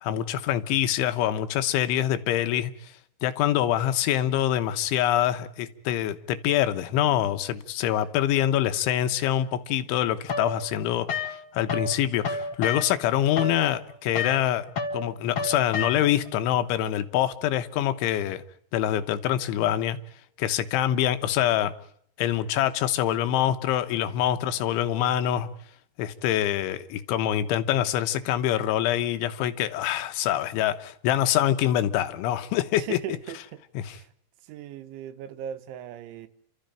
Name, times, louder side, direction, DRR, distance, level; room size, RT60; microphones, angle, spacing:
voice 1, 0.0-2.9 3.2-14.7 14.9-18.4 18.7-20.0 20.4-21.7 22.2-25.5 26.0-33.0 33.8-34.0, left 11 dB, 85° left, 3.5 m, -25 dB
sound 1, 10.3-11.9 12.2-16.3, left 4 dB, 65° left, 1.3 m, -31 dB
voice 2, 32.8-34.1 34.4-36.3, right 10 dB, 85° right, 3.6 m, -39 dB
30.0 x 13.5 x 9.0 m
omnidirectional pair, 5.3 m